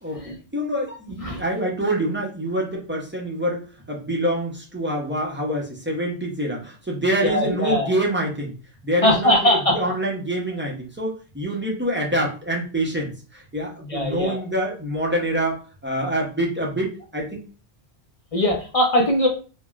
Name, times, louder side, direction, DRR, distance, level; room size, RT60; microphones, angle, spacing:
voice 1, 0.5-8.5 8.8-17.4, right 1 dB, 15° right, -2 dB, 0.5 m, -26 dB
voice 2, 7.2-7.9 9.0-9.8 13.9-14.4 18.3-19.3, left 1 dB, 45° left, 0 dB, 0.5 m, -20 dB
3.4 x 2.1 x 2.3 m, 0.35 s
omnidirectional pair, 1.2 m